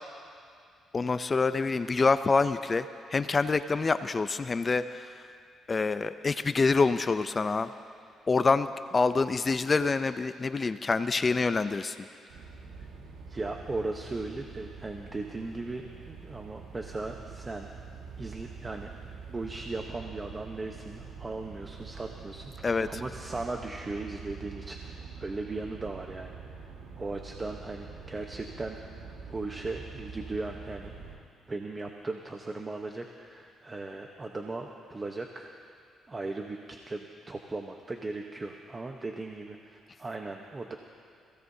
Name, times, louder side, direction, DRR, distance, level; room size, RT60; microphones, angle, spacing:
voice 1, 0.9-5.1 5.7-7.7 8.3-8.7 8.9-12.0 22.6-23.0, left 4 dB, 30° left, 11 dB, 0.5 m, -26 dB
sound 1, 12.3-31.2, right 5 dB, 85° right, 1.7 m, -45 dB
voice 2, 13.3-17.7 18.2-18.9 19.3-26.3 26.6-30.9 31.5-35.5 36.1-36.6 36.9-40.7, right 3 dB, 25° right, 3 dB, 1.0 m, -37 dB
26.0 x 16.5 x 2.8 m, 2.4 s
cardioid pair, 90°, 0 cm